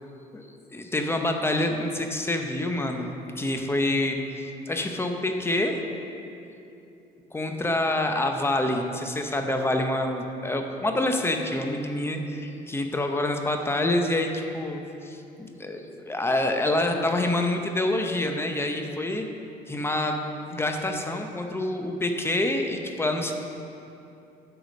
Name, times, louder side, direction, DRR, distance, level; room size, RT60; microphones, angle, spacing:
voice 1, 0.3-3.1 3.4-5.8 7.3-19.3 19.7-20.2 20.5-23.3, left 1 dB, 15° left, 4 dB, 0.7 m, -27 dB
9.0 x 4.9 x 6.3 m, 2.8 s
cardioid pair, 110°, 17 cm